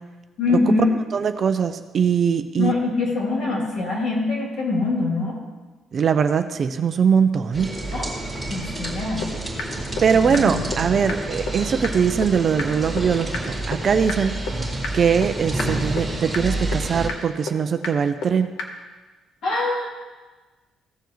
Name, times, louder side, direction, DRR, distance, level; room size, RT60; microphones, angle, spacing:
voice 1, 0.4-0.9 2.6-5.4 7.9-8.1 8.5-9.3 10.2-10.6 19.4-19.9, left 3 dB, 55° left, -2 dB, 2.9 m, -23 dB
voice 2, 1.1-2.8 5.9-7.7 10.0-14.3 14.9-18.5, right 6 dB, 35° right, 9 dB, 0.4 m, -21 dB
sound 1, 7.5-17.1, right 1 dB, ahead, 2.0 m, -29 dB
sound 2, 8.8-8.9 9.2-9.3 9.6-9.7 10.0-10.1 10.3-10.4 10.7-10.8 11.1-11.2 11.5-11.6 11.8-11.9 12.2-12.3 12.6-12.7 13.0-13.1 13.3-13.4 13.7-13.8 14.1-14.2 14.5-14.6 14.8-14.9 15.2-15.3 15.6-15.7 16.0-16.1 16.3-16.4 16.7-16.8 17.1-17.2 17.5-17.6 17.8-17.9 18.2-18.3 18.6-18.7, left 4 dB, 80° left, 1.1 m, -28 dB
15.5 x 6.9 x 3.1 m, 1.3 s
cardioid pair, 170°, 0 cm